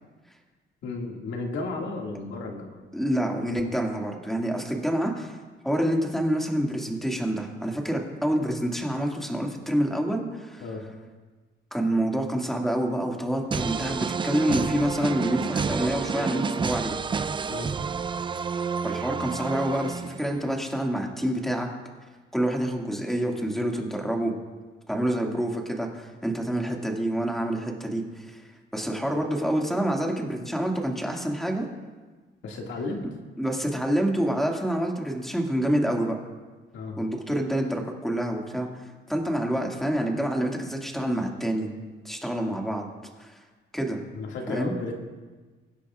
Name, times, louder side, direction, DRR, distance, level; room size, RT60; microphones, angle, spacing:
voice 1, 0.8-2.8 10.6-10.9 17.5-17.7 32.4-33.1 36.7-37.0 44.1-44.9, left 3 dB, 75° left, 0 dB, 2.1 m, -33 dB
voice 2, 2.9-5.4 5.6-10.6 11.7-17.0 18.8-21.7 22.3-24.3 24.9-28.4 28.7-31.7 33.4-36.2 37.0-41.7 42.0-42.9 43.2-43.4 43.7-44.0 44.5-44.7, right 1 dB, ahead, 0 dB, 2.1 m, -27 dB
sound 1, 13.5-20.5, right 5 dB, 25° right, 0.4 m, -30 dB
23.0 x 9.9 x 2.4 m, 1.4 s
cardioid pair, 90°, 20 cm